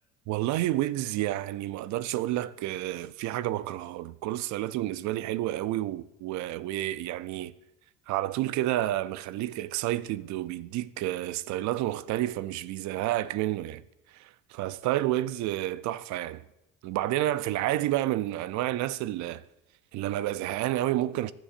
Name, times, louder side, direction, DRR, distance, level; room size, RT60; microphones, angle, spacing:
voice 1, 0.3-7.5 8.1-13.8 14.2-16.4 16.8-19.4 19.9-21.3, right 14 dB, 60° right, 0.5 m, -30 dB
18.0 x 7.2 x 2.5 m
cardioid pair, 110°, 33 cm